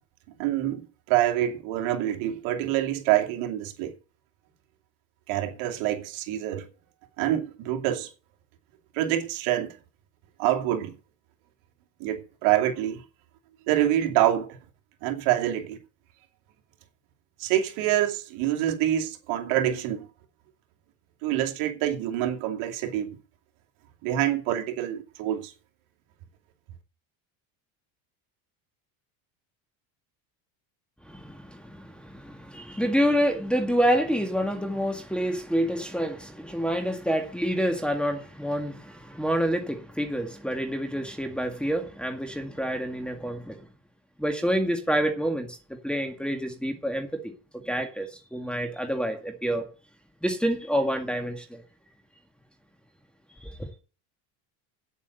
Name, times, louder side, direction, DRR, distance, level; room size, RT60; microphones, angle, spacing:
voice 1, 0.4-3.9 5.3-6.7 7.2-8.1 8.9-9.8 10.4-11.0 12.0-13.0 13.7-14.6 15.0-15.8 17.4-20.1 21.2-23.1 24.0-25.5, right 12 dB, 70° right, 2.7 m, -26 dB
voice 2, 31.1-43.7 44.2-49.7 50.2-51.6 53.4-53.7, equal, ahead, 2.0 m, -28 dB
9.2 x 8.3 x 7.8 m
supercardioid pair, 125°, 49 cm